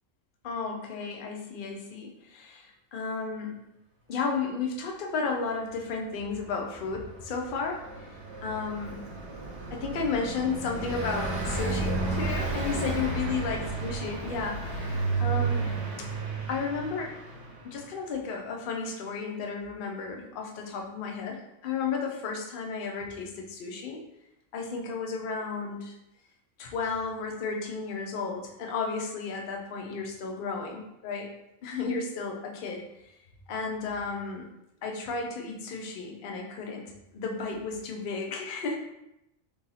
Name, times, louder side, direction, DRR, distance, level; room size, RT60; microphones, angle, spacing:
voice 1, 0.4-3.7 4.1-7.9 8.4-9.0 9.7-15.7 16.0-16.1 16.5-17.2 17.6-24.0 24.5-25.9 26.6-31.3 31.6-32.8 33.5-34.5 34.8-38.8, left 4 dB, 55° left, 1 dB, 0.6 m, -33 dB
Car passing by, 6.8-17.8, right 3 dB, 65° right, 1.0 m, -32 dB
2.7 x 2.7 x 3.9 m, 0.86 s
omnidirectional pair, 1.3 m